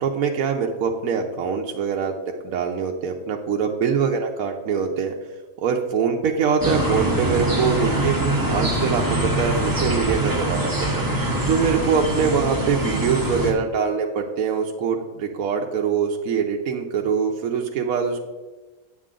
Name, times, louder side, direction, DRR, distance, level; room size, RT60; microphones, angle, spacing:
voice 1, 0.0-2.1 2.4-5.1 5.6-8.2 8.5-11.0 11.5-18.3, right 6 dB, 75° right, 1 dB, 1.2 m, -23 dB
sound 1, 6.6-13.5, right 1 dB, 15° right, 1.1 m, -23 dB
8.5 x 8.4 x 3.7 m, 1.2 s
omnidirectional pair, 1.5 m